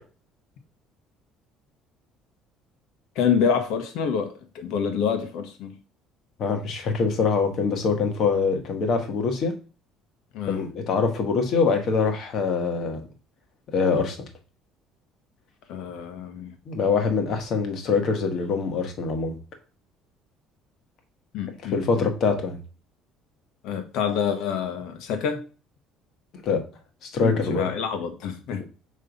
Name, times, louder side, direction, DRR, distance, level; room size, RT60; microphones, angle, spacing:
voice 1, 3.1-5.8 10.3-10.6 15.7-16.5 21.3-22.1 23.6-25.4 27.2-28.7, left 7 dB, 70° left, 1.3 m, -27 dB
voice 2, 6.4-9.5 10.5-13.0 13.7-14.2 16.7-19.3 21.7-22.6 26.3-26.6 27.0-27.7, left 4 dB, 45° left, 1.3 m, -24 dB
5.4 x 3.3 x 5.3 m
cardioid pair, 160°, 0 cm